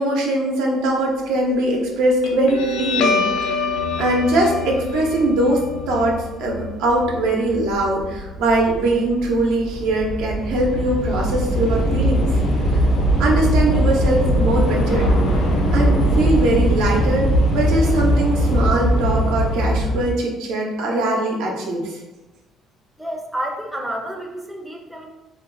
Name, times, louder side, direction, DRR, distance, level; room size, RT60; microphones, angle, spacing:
voice 1, 0.0-3.5 4.0-12.3 13.2-15.1 15.7-22.0, right 1 dB, 85° right, -1 dB, 0.7 m, -21 dB
Guitar, 2.2-9.2, left 3 dB, 90° left, 0.4 m, -26 dB
Train / Subway metro underground, 7.0-7.3 7.5-20.1, equal, 70° left, 0.7 m, -20 dB
voice 2, 23.0-25.1, right 1 dB, ahead, 0 dB, 0.4 m, -29 dB
2.5 x 2.2 x 3.7 m, 1.1 s
cardioid pair, 120°, 0 cm